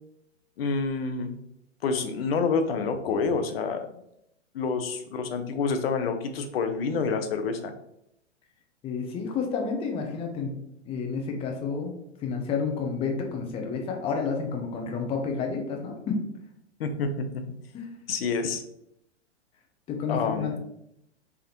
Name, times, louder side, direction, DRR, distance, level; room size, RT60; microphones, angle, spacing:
voice 1, 0.6-1.3 1.8-3.8 4.5-7.7 16.8-17.4 18.1-18.6 20.1-20.5, left 4 dB, 55° left, 7 dB, 0.6 m, -28 dB
voice 2, 8.8-10.5 10.8-11.9 12.2-16.2 17.7-17.9 19.9-20.6, left 5 dB, 15° left, 2 dB, 0.6 m, -30 dB
3.5 x 3.4 x 2.9 m, 0.77 s
hypercardioid pair, 120°, 35 cm